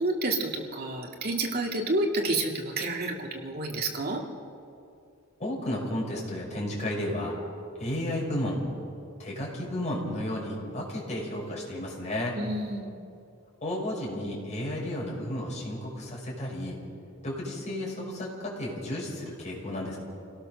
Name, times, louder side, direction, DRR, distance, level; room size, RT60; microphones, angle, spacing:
voice 1, 0.0-4.2 12.3-13.0, right 2 dB, 50° right, 1 dB, 2.4 m, -29 dB
voice 2, 5.4-7.3 7.8-8.6 9.2-12.4 13.6-16.8 17.2-20.0, left 1 dB, 35° left, -3 dB, 6.0 m, -33 dB
27.0 x 17.5 x 6.7 m, 2.5 s
head